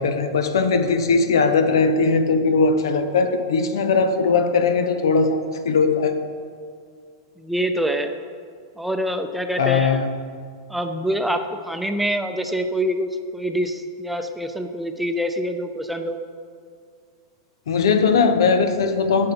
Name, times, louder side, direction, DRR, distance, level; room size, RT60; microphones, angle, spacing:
voice 1, 0.0-6.2 9.6-10.1 17.7-19.3, left 4 dB, 80° left, 8 dB, 0.8 m, -19 dB
voice 2, 7.4-8.1 8.8-10.0 10.7-16.2, equal, 5° right, 6 dB, 0.6 m, -25 dB
10.5 x 6.6 x 4.3 m, 2.1 s
hypercardioid pair, 120°, 2 cm